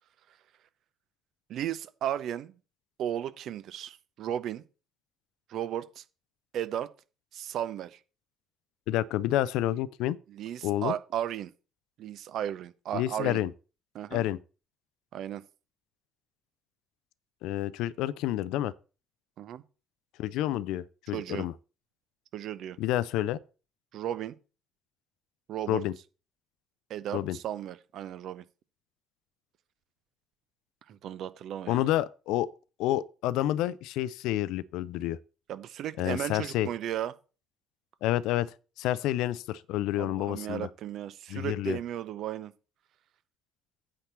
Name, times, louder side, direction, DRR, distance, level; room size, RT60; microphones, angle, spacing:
voice 1, 1.5-2.5 3.0-4.6 5.5-6.0 6.5-6.9 7.3-8.0 10.3-11.5 12.0-13.4 13.9-14.2 15.1-15.4 19.4-19.6 21.1-21.5 22.3-22.8 23.9-24.3 25.5-25.8 26.9-28.4 30.9-31.9 35.5-37.1 40.0-42.5, right 11 dB, 55° right, 0.7 m, -35 dB
voice 2, 8.9-10.2 10.6-10.9 12.9-13.5 14.1-14.4 17.4-18.7 20.2-21.5 22.8-23.4 25.7-26.0 27.1-27.4 31.7-32.5 32.8-35.2 36.0-36.7 38.0-40.7 41.3-41.8, left 14 dB, 65° left, 0.5 m, -29 dB
8.8 x 4.3 x 7.0 m
figure-of-eight pair, 50°, 0 cm